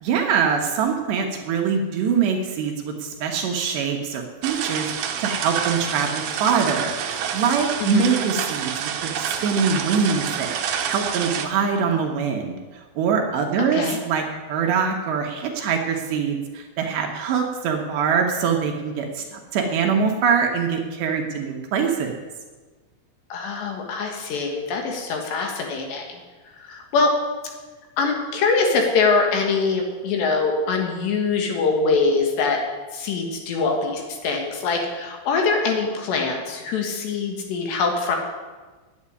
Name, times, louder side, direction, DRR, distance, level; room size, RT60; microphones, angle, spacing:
voice 1, 0.0-4.9 5.2-10.5 10.9-12.6 13.0-14.2 14.5-22.1, right 6 dB, 70° right, 2 dB, 3.1 m, -23 dB
sound 1, 4.4-11.5, right 8 dB, 85° right, 2.1 m, -28 dB
voice 2, 13.6-14.0 23.3-26.2 26.6-27.1 28.0-32.6 32.9-38.2, left 4 dB, 65° left, 2 dB, 3.5 m, -23 dB
9.7 x 8.8 x 9.9 m, 1.3 s
omnidirectional pair, 5.7 m